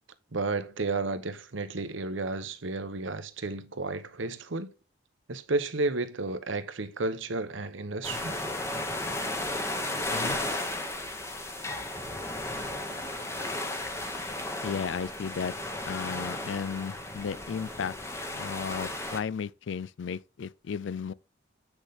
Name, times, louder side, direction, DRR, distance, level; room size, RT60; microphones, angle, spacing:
voice 1, 0.3-4.7 5.3-8.4, right 3 dB, 75° right, 1.0 m, -32 dB
sound 1, 8.0-19.2, left 1 dB, 15° left, 1.0 m, -34 dB
voice 2, 14.6-15.5 15.8-17.9 18.3-21.1, left 6 dB, 70° left, 0.4 m, -34 dB
8.1 x 6.1 x 3.6 m
head